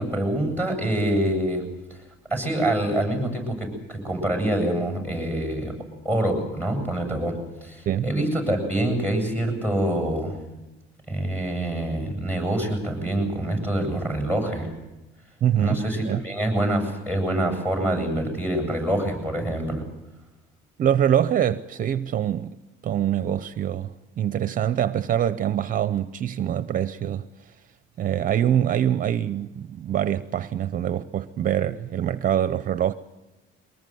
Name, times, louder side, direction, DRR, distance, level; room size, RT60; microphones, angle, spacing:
voice 1, 0.0-1.7 2.3-5.7 6.0-10.4 11.1-14.7 15.6-19.8, right 1 dB, 10° left, 7.7 m, -25 dB
voice 2, 15.4-16.2 20.8-22.6 22.8-27.5 28.0-32.9, right 10 dB, 45° right, 0.7 m, -24 dB
23.5 x 20.0 x 7.8 m
cardioid pair, 130°, 20 cm